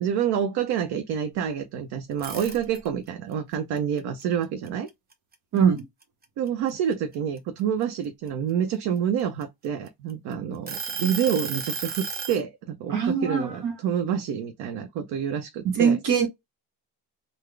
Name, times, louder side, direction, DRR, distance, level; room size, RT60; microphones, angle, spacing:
voice 1, 0.0-4.9 6.4-16.0, right 8 dB, 85° right, 0.8 m, -28 dB
sound 1, 2.1-3.1 3.5-5.3 5.8-6.0 6.5-8.3 9.0-10.1 10.7-12.4, right 5 dB, 25° right, 0.7 m, -33 dB
voice 2, 5.5-5.8 12.9-13.7 15.6-16.3, right 6 dB, 50° right, 1.0 m, -22 dB
3.9 x 2.1 x 3.2 m
cardioid pair, 150°, 39 cm